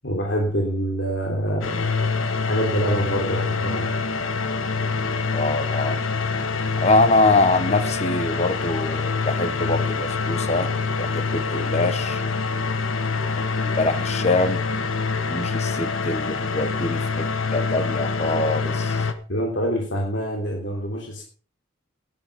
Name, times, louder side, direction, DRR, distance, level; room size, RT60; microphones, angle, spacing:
voice 1, 0.0-3.9 19.3-21.2, equal, 60° left, 3.3 m, -26 dB
sound 1, 1.6-19.1, left 4 dB, 80° left, 1.4 m, -25 dB
voice 2, 5.3-6.0 6.8-12.2 13.3-14.6 15.3-19.0, left 2 dB, 35° left, 1.1 m, -24 dB
12.0 x 11.0 x 5.3 m
head